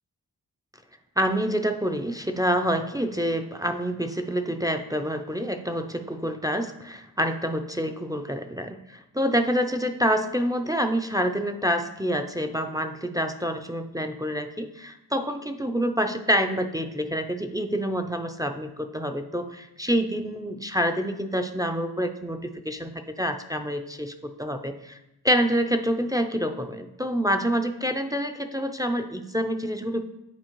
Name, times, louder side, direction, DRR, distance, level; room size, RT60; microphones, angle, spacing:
voice 1, 1.2-25.0 25.2-30.0, equal, 10° right, 7 dB, 0.4 m, -27 dB
8.8 x 4.3 x 3.0 m, 0.89 s
cardioid pair, 40°, 40 cm